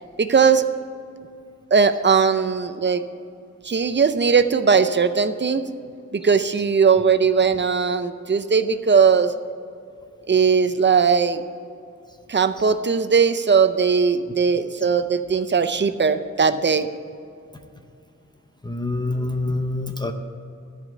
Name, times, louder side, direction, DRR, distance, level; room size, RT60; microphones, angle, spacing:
voice 1, 0.2-0.6 1.7-3.0 3.6-5.6 6.1-9.3 10.3-11.4 12.3-16.9, right 5 dB, 40° right, 10 dB, 0.6 m, -19 dB
voice 2, 18.6-20.1, left 2 dB, 15° left, 5 dB, 0.6 m, -26 dB
13.0 x 5.1 x 8.4 m, 2.5 s
wide cardioid pair, 110°, 30 cm